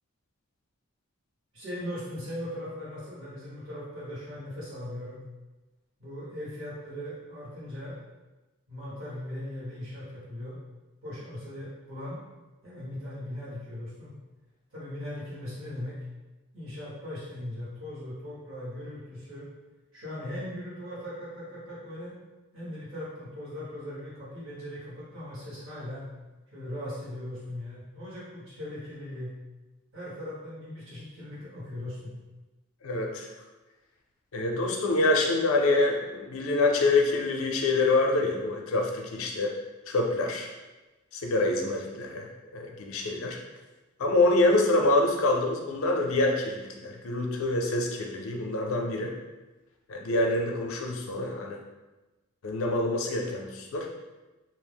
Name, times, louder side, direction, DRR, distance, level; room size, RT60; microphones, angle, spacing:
voice 1, 1.5-5.2 6.0-8.0 8.7-10.6 11.0-12.2 12.6-14.2 14.7-16.0 16.5-19.5 19.9-22.2 22.5-26.1 26.5-29.3 29.9-32.1, left 1 dB, 65° right, -8 dB, 1.3 m, -39 dB
voice 2, 32.8-33.3 34.3-39.5 39.9-40.5 41.1-42.3 42.5-43.4 44.0-49.1 49.9-51.6 52.4-53.9, left 2 dB, 70° left, 1 dB, 0.4 m, -26 dB
2.7 x 2.0 x 3.4 m, 1.1 s
head